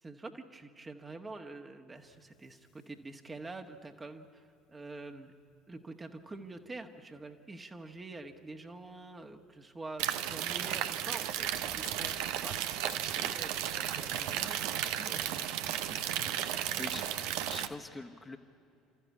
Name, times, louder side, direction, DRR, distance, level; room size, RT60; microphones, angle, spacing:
voice 1, 0.0-5.3 5.7-16.4 16.7-17.2, right 2 dB, 20° right, 5 dB, 1.6 m, -47 dB
sound 1, 2.0-4.3 4.6-4.7 5.0-5.1 5.3-5.7 6.0-7.4 7.7-10.7 11.0-17.7, left 8 dB, 55° left, 2.6 m, -57 dB
sound 2, 10.0-17.7, right 11 dB, 60° right, 0.8 m, -34 dB
voice 2, 16.8-17.1 17.4-18.4, left 2 dB, 15° left, 5 dB, 1.4 m, -43 dB
29.5 x 13.5 x 8.5 m, 2.6 s
figure-of-eight pair, 60°, 0 cm